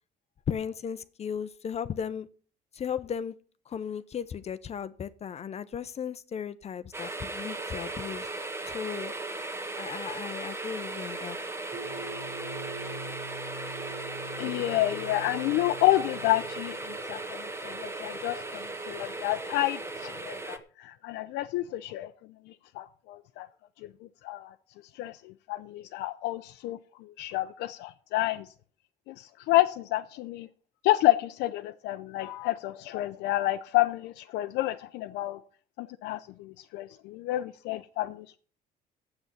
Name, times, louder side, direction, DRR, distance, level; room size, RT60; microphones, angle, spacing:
voice 1, 0.5-2.3 2.7-3.4 3.7-8.4 8.7-9.1 9.8-11.4, left 7 dB, 40° left, 0.6 m, -36 dB
sound 1, 6.9-20.6, right 2 dB, 15° right, 1.3 m, -37 dB
sound 2, 11.7-16.9, right 2 dB, 65° right, 3.3 m, -44 dB
voice 2, 14.4-22.1 22.5-23.5 24.2-24.5 24.9-28.5 29.1-30.5 30.8-35.4 35.8-38.4, left 16 dB, 90° left, 0.6 m, -29 dB
8.1 x 7.8 x 8.6 m
cardioid pair, 110°, 17 cm